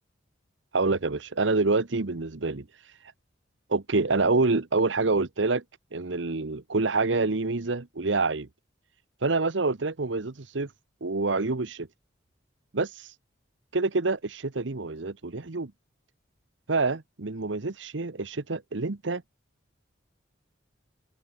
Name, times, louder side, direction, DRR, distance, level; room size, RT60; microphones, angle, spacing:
voice 1, 0.7-2.7 3.7-5.6 5.9-8.5 9.2-10.7 11.0-11.9 12.7-13.1 13.7-15.7 16.7-19.2, right 3 dB, 75° right, 1.0 m, -27 dB
open air
head